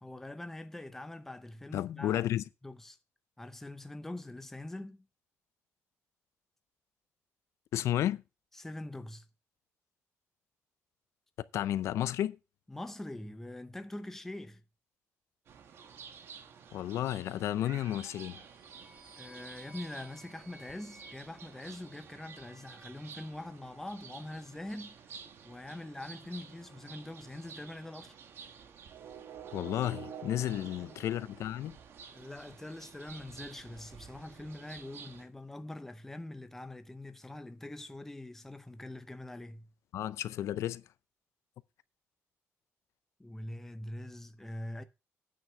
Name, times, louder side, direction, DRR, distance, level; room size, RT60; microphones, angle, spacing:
voice 1, 0.0-2.3 2.6-3.0 3.4-5.1 8.5-9.3 12.7-14.6 19.2-25.0 25.4-28.2 30.6-30.9 32.1-39.7 43.2-44.8, left 1 dB, 5° left, 0.7 m, -44 dB
voice 2, 1.7-2.4 7.7-8.2 11.5-12.4 16.7-18.4 29.5-31.8 39.9-40.8, left 12 dB, 80° left, 0.5 m, -32 dB
sound 1, 15.5-35.3, right 7 dB, 55° right, 1.2 m, -50 dB
sound 2, 18.1-22.5, right 1 dB, 20° right, 6.2 m, -58 dB
9.3 x 5.8 x 6.1 m
cardioid pair, 175°, 5 cm